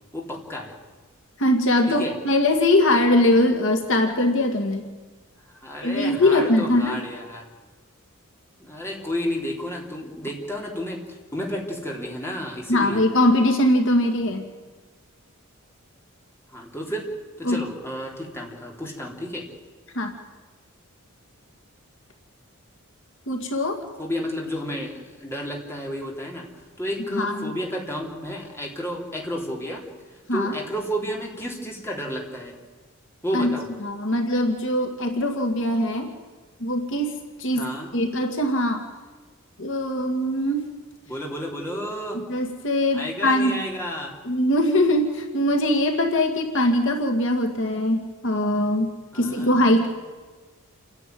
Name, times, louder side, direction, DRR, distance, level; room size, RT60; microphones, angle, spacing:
voice 1, 0.1-0.7 1.9-2.1 5.5-7.4 8.6-13.1 16.5-17.1 17.4-19.5 24.0-26.5 26.8-29.9 30.3-32.6 33.2-33.7 37.5-37.9 41.1-42.2 42.9-44.1 48.7-48.8 49.1-49.9, equal, 10° left, -1 dB, 3.4 m, -31 dB
voice 2, 1.4-4.9 5.8-7.0 12.7-14.5 17.5-17.6 20.0-20.1 23.3-23.8 27.1-27.6 30.3-30.5 33.3-33.6 33.8-36.1 36.6-38.8 39.6-40.7 42.3-43.6 44.3-49.9, left 1 dB, 60° left, 4 dB, 2.1 m, -22 dB
29.0 x 10.5 x 9.4 m, 1.3 s
head